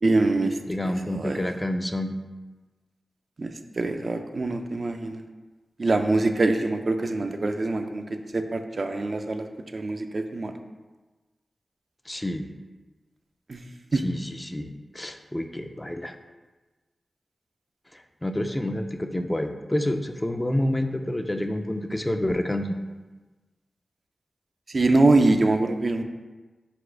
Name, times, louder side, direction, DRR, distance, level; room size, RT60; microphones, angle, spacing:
voice 1, 0.0-0.6 1.1-1.4 3.4-5.2 5.8-9.5 9.7-10.5 13.5-13.6 13.9-14.0 24.7-26.0, right 2 dB, 60° right, 6 dB, 0.4 m, -24 dB
voice 2, 0.7-2.1 12.1-12.5 14.0-16.1 18.2-22.8, left 1 dB, 20° left, 6 dB, 0.4 m, -28 dB
4.1 x 2.4 x 4.5 m, 1.2 s
cardioid pair, 50°, 0 cm